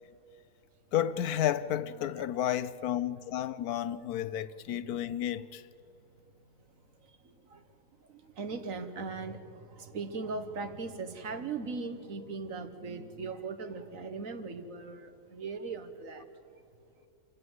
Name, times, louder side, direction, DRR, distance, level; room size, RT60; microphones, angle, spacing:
voice 1, 0.9-5.6, left 11 dB, 80° left, 1.2 m, -31 dB
voice 2, 7.0-7.6 8.0-16.3, right 4 dB, 60° right, 1.6 m, -39 dB
27.5 x 16.5 x 8.0 m
omnidirectional pair, 1.6 m